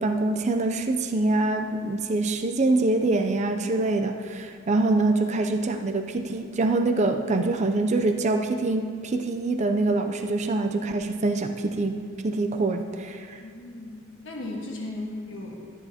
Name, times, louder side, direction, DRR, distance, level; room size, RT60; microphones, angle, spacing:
voice 1, 0.0-13.4, right 2 dB, 35° right, 5 dB, 0.5 m, -25 dB
voice 2, 13.4-15.6, left 2 dB, 65° left, -2 dB, 1.5 m, -36 dB
13.0 x 9.1 x 2.8 m, 2.2 s
head